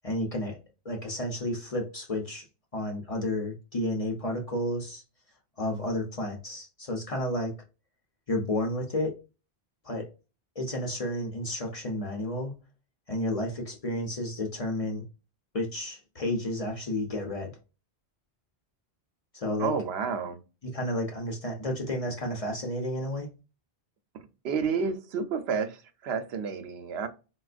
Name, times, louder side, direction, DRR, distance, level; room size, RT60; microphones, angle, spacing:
voice 1, 0.0-0.6 0.8-2.5 2.7-5.0 5.6-7.5 8.3-9.1 9.8-10.1 10.6-12.5 13.1-15.0 15.5-17.5 19.3-19.7 20.6-23.3, left 1 dB, 40° left, 0.6 m, -31 dB
voice 2, 19.6-20.4 24.4-27.1, right 6 dB, 75° right, 0.8 m, -30 dB
4.1 x 2.2 x 2.4 m
omnidirectional pair, 1.1 m